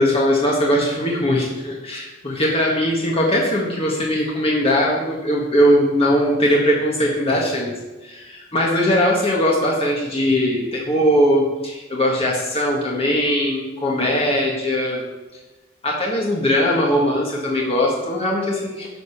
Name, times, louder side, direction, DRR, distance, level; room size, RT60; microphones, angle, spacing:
voice 1, 0.0-7.7 8.0-15.0 15.8-18.9, equal, 30° left, -3 dB, 1.6 m, -20 dB
10.5 x 5.2 x 7.1 m, 1.1 s
head